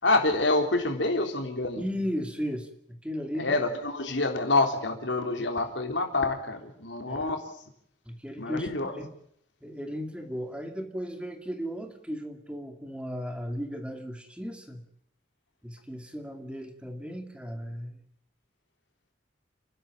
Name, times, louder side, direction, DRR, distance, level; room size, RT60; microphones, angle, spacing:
voice 1, 0.0-1.8 3.3-7.4 8.4-9.0, left 2 dB, 75° left, 4 dB, 3.7 m, -27 dB
voice 2, 1.8-3.6 7.1-7.3 8.1-9.1 9.6-14.8 15.6-18.0, equal, 5° right, 5 dB, 2.3 m, -36 dB
29.5 x 12.5 x 8.8 m, 0.69 s
head